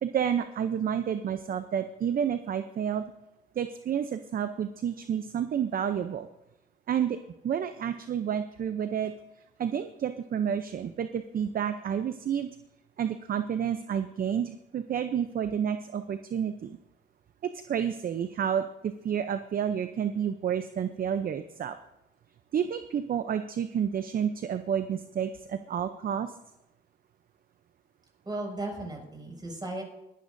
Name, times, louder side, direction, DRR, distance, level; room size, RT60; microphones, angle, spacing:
voice 1, 0.0-3.0 3.6-6.3 6.9-7.2 7.4-9.1 9.6-12.5 13.0-16.8 17.4-21.8 22.5-26.3, right 8 dB, 45° right, 10 dB, 0.6 m, -30 dB
voice 2, 28.2-29.8, right 2 dB, 20° right, 0 dB, 5.8 m, -36 dB
21.0 x 11.5 x 2.6 m, 0.91 s
cardioid pair, 90°, 20 cm